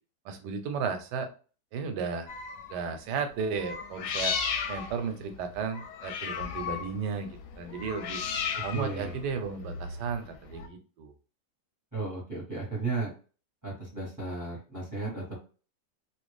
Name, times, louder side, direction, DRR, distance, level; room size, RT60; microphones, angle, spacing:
voice 1, 0.2-1.3 1.7-2.3 2.7-4.3 4.7-8.2 8.6-11.1, right 5 dB, 90° right, 7 dB, 1.3 m, -34 dB
sound 1, 2.3-2.8 3.6-10.7, left 6 dB, 85° left, 1.2 m, -35 dB
voice 2, 8.5-9.2 11.9-13.1 13.6-15.2, right 3 dB, 15° right, -4 dB, 0.9 m, -34 dB
3.1 x 2.5 x 3.2 m, 0.36 s
omnidirectional pair, 1.8 m